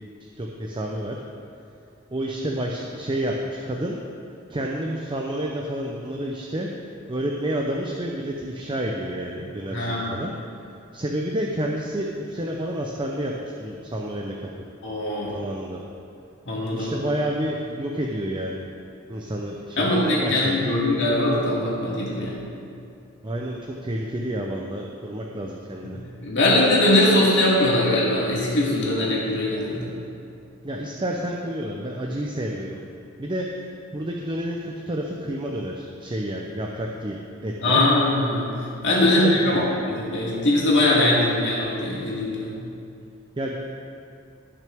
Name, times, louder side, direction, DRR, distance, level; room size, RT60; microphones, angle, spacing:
voice 1, 0.4-1.2 2.1-4.0 4.5-6.7 7.1-10.4 10.9-13.3 13.6-14.5 15.3-15.8 16.7-18.6 19.1-20.5 23.2-26.0 30.6-32.9 33.2-33.5 33.9-37.8 39.0-39.7 43.4-43.6, right 1 dB, 25° right, 0 dB, 0.6 m, -29 dB
voice 2, 9.7-10.2 14.8-15.4 16.5-16.9 19.8-22.4 26.2-29.9 37.6-38.5 38.8-42.5, left 1 dB, 60° left, -5 dB, 2.6 m, -21 dB
17.0 x 6.2 x 3.5 m, 2.5 s
head